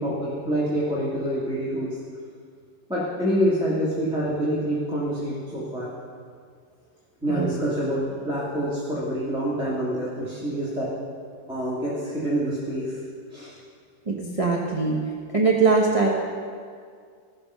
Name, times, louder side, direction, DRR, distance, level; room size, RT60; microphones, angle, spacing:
voice 1, 0.0-2.0 2.9-5.9 7.2-10.9 11.5-13.0 13.3-13.5, equal, 5° right, -9 dB, 1.8 m, -26 dB
voice 2, 14.1-15.0 15.3-16.1, right 4 dB, 25° right, -3 dB, 1.0 m, -21 dB
16.0 x 6.9 x 5.5 m, 2.1 s
omnidirectional pair, 2.0 m